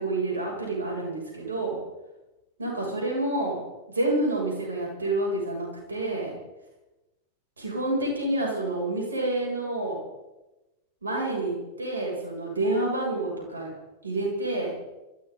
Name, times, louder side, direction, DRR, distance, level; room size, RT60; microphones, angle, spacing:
voice 1, 0.0-1.8 2.6-3.6 3.9-6.4 7.6-10.0 11.0-13.7 14.0-14.7, right 2 dB, 75° right, -2 dB, 7.4 m, -28 dB
23.0 x 15.5 x 4.1 m, 1.0 s
figure-of-eight pair, 90°, 0 cm